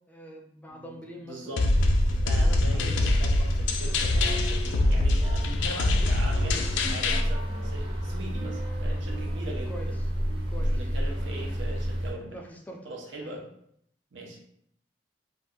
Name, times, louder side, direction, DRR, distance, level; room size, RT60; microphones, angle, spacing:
voice 1, 0.1-1.7 2.3-3.2 9.7-9.9 10.5-10.8 12.3-12.9 13.2-13.4, equal, 10° left, 1 dB, 0.3 m, -44 dB
voice 2, 0.7-1.7 2.0-9.9 10.5-12.4 12.8-13.5 14.1-14.4, right 1 dB, 85° right, 0 dB, 0.7 m, -41 dB
sound 1, 1.6-7.2, left 2 dB, 85° left, 0.4 m, -24 dB
sound 2, 1.7-12.1, equal, 30° right, 0.7 m, -30 dB
2.6 x 2.3 x 3.4 m, 0.70 s
head